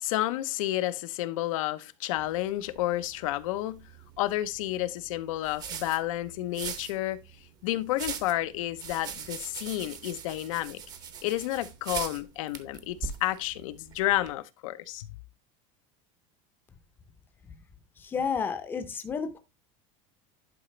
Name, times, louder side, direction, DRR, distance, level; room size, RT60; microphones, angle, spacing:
voice 1, 0.0-3.8 4.2-7.2 7.6-10.8 11.2-15.1, left 15 dB, 80° left, 0.8 m, -30 dB
sound 1, 2.2-14.3, right 7 dB, 25° right, 0.7 m, -42 dB
voice 2, 18.0-19.4, left 6 dB, 10° left, 0.6 m, -31 dB
11.0 x 5.0 x 3.2 m
supercardioid pair, 175°, 17 cm